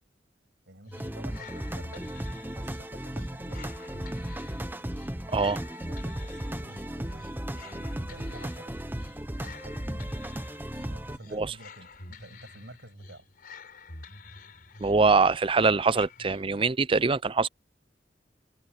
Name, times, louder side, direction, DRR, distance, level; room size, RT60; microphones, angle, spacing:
voice 1, 0.7-2.2 2.5-3.9 5.9-8.7 9.4-10.1 10.8-13.3, right 1 dB, 85° right, 7.9 m, -50 dB
sound 1, 0.8-16.8, left 3 dB, 55° left, 4.1 m, -48 dB
sound 2, 0.9-11.2, right 1 dB, 10° right, 1.0 m, -36 dB
voice 2, 14.8-17.5, right 4 dB, 30° right, 0.5 m, -23 dB
head